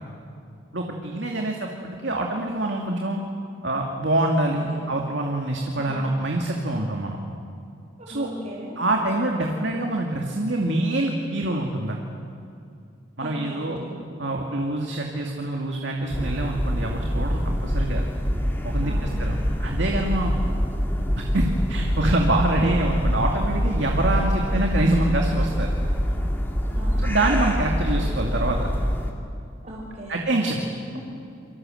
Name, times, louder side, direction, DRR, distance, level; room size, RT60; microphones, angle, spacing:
voice 1, 0.7-3.2 3.6-7.2 8.1-8.3 8.8-12.1 13.2-13.8 14.2-18.1 18.6-18.9 19.2-20.3 21.2-25.7 27.0-28.7 30.1-30.6, right 1 dB, 65° right, 1 dB, 2.4 m, -25 dB
voice 2, 4.5-5.0 5.8-6.2 8.0-8.8 13.2-13.9 18.8-19.2 24.5-24.9 26.7-27.2 29.6-30.2 30.9-31.0, right 1 dB, 40° right, -6 dB, 5.5 m, -39 dB
sound 1, 16.1-29.1, equal, 10° left, 2.7 m, -25 dB
29.0 x 24.5 x 7.9 m, 2.5 s
head